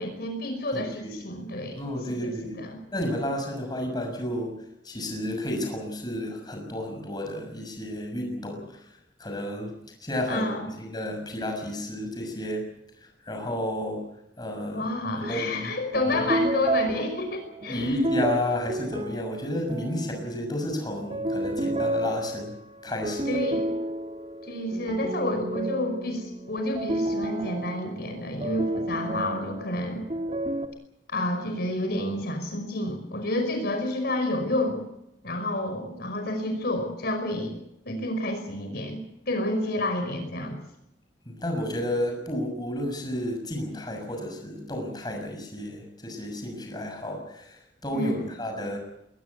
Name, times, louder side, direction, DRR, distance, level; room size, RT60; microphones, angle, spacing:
voice 1, 0.0-1.8 2.1-2.8 10.3-10.7 14.7-17.9 23.3-23.7 24.4-30.0 31.1-34.8 35.2-37.6 37.9-39.0 39.3-40.6 47.9-48.3, left 1 dB, 60° left, 5 dB, 5.4 m, -29 dB
voice 2, 0.7-1.1 1.8-2.6 2.9-8.8 9.2-9.7 10.0-10.5 10.8-12.7 13.2-14.0 14.4-14.9 15.2-15.7 17.7-22.5 22.8-23.3 41.2-48.8, left 1 dB, 25° left, 3 dB, 6.3 m, -31 dB
sound 1, 15.2-15.5 15.9-20.5 21.0-30.7, right 1 dB, 35° right, 2.2 m, -31 dB
21.5 x 20.0 x 8.3 m, 0.81 s
head